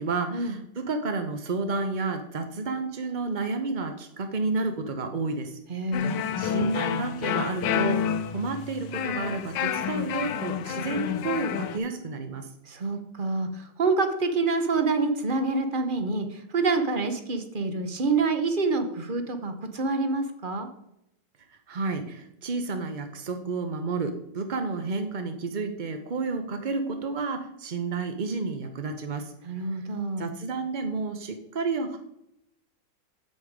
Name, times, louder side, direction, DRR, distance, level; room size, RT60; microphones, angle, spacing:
voice 1, 0.0-5.6 6.4-12.5 21.5-29.3 29.7-29.8 30.2-32.0, right 3 dB, 65° right, 7 dB, 0.4 m, -31 dB
voice 2, 5.7-6.2 12.7-20.7 29.4-30.3, right 3 dB, 40° right, 7 dB, 0.7 m, -27 dB
sound 1, 5.9-11.8, left 8 dB, 75° left, 1.3 m, -29 dB
8.0 x 7.6 x 5.0 m, 0.82 s
omnidirectional pair, 2.0 m